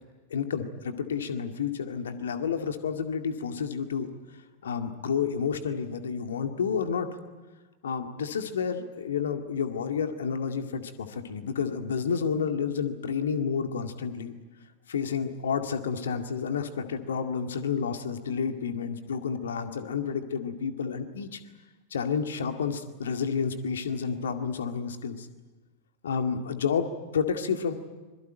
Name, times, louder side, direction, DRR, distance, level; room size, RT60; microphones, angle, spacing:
voice 1, 0.3-4.1 4.6-7.1 7.8-14.4 14.9-21.4 21.9-25.3 26.0-27.7, left 6 dB, 65° left, 7 dB, 2.1 m, -30 dB
24.5 x 22.5 x 9.1 m, 1.3 s
figure-of-eight pair, 90°, 0 cm